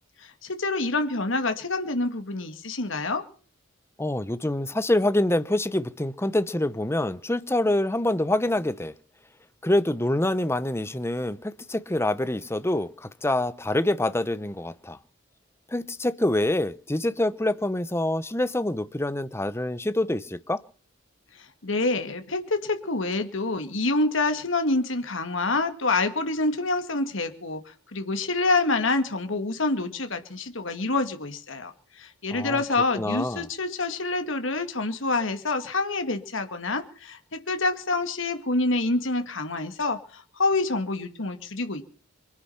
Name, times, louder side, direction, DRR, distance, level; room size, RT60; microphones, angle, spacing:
voice 1, 0.2-3.2 21.3-41.8, left 3 dB, 70° left, 2.2 m, -27 dB
voice 2, 4.0-8.9 9.6-15.0 15.7-20.6 32.3-32.6 32.9-33.5, left 1 dB, 15° left, 0.8 m, -26 dB
24.0 x 9.8 x 5.8 m
head